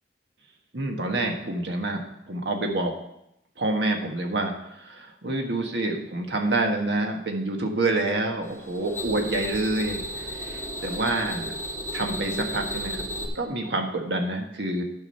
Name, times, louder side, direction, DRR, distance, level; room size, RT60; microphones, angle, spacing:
voice 1, 0.7-2.9 3.6-11.5 11.9-13.0 13.3-14.8, right 2 dB, 80° right, 3 dB, 1.5 m, -27 dB
sound 1, 8.4-13.3, equal, 15° left, 1.7 m, -34 dB
11.0 x 6.2 x 5.6 m, 0.81 s
head